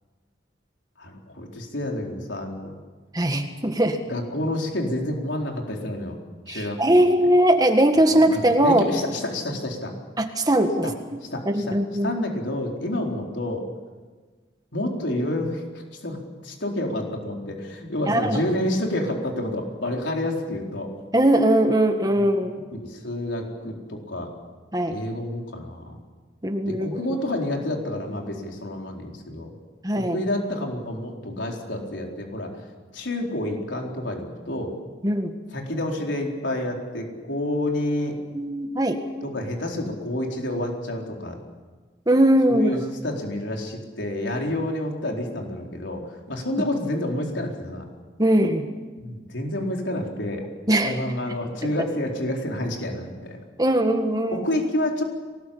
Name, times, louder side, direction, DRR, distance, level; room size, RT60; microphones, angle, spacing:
voice 1, 1.0-2.7 4.1-6.2 6.5-6.9 8.1-9.9 10.8-10.9 11.3-11.8 12.0-13.7 14.7-16.2 16.4-20.9 22.7-24.3 24.9-25.9 26.6-29.5 30.1-32.5 32.9-34.7 35.5-38.2 39.2-41.4 42.5-47.9 49.0-50.4 50.8-53.4 54.3-55.0, left 1 dB, 80° left, 1 dB, 4.3 m, -29 dB
voice 2, 3.1-4.0 6.5-8.9 10.2-10.9 11.5-12.1 18.1-18.4 21.1-22.5 24.7-25.0 26.4-27.0 29.8-30.2 35.0-35.4 38.3-39.0 42.1-42.7 48.2-48.7 50.7-51.0 51.6-51.7 53.6-54.5, right 1 dB, 20° right, 5 dB, 1.7 m, -20 dB
23.0 x 19.5 x 8.6 m, 1.4 s
head